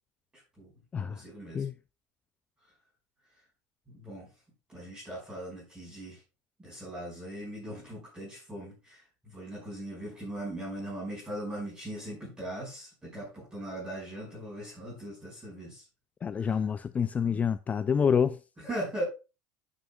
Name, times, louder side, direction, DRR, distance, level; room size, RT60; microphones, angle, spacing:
voice 1, 0.6-1.7 3.9-4.3 4.7-6.2 6.6-15.8 16.3-16.7 17.2-17.5 18.6-19.0, right 1 dB, 15° right, 5.5 m, -40 dB
voice 2, 16.2-18.4, left 7 dB, 25° left, 0.3 m, -27 dB
14.0 x 6.3 x 2.3 m
supercardioid pair, 115°, 6 cm